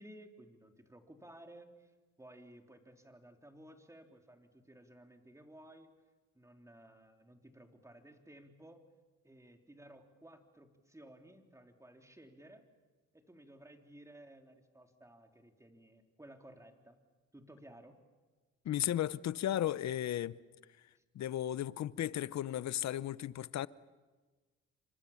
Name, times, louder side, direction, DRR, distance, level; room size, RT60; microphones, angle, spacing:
voice 1, 0.0-1.9 2.2-5.9 6.3-8.8 9.2-12.6 13.1-17.0 17.3-18.0 21.0-21.1, right 1 dB, 10° right, 3.4 m, -56 dB
voice 2, 18.6-20.4 21.1-23.7, left 12 dB, 65° left, 0.8 m, -35 dB
29.5 x 25.5 x 7.2 m
cardioid pair, 90°, 30 cm